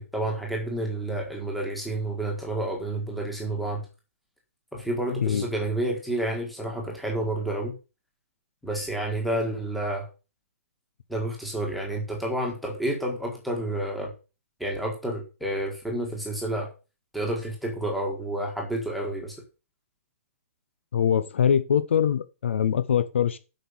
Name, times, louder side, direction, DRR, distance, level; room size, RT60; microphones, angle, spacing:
voice 1, 0.0-3.9 4.7-7.7 8.6-10.1 11.1-14.1 14.6-16.7 17.1-19.3, right 1 dB, ahead, 1.6 m, -30 dB
voice 2, 20.9-23.4, left 8 dB, 55° left, 0.8 m, -23 dB
7.9 x 6.3 x 7.1 m
hypercardioid pair, 180°, 8 cm